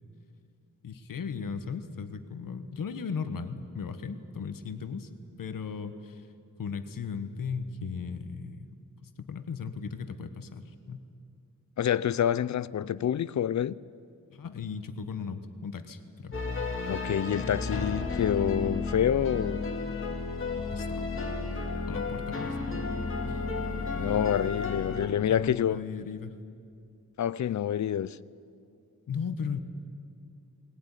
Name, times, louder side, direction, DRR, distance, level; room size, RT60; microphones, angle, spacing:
voice 1, 0.8-5.1 5.4-6.3 6.6-8.7 9.0-11.0 14.3-16.4 16.8-17.0 20.7-21.1 21.4-21.6 21.9-22.8 23.2-23.4 24.9-26.4 29.1-29.6, left 6 dB, 85° left, 1.5 m, -37 dB
voice 2, 11.8-13.7 16.8-19.7 23.9-25.8 27.2-28.2, left 9 dB, 60° left, 0.5 m, -27 dB
sound 1, 16.3-25.1, left 3 dB, 40° left, 2.5 m, -32 dB
20.0 x 19.0 x 10.0 m
wide cardioid pair, 145°, 32 cm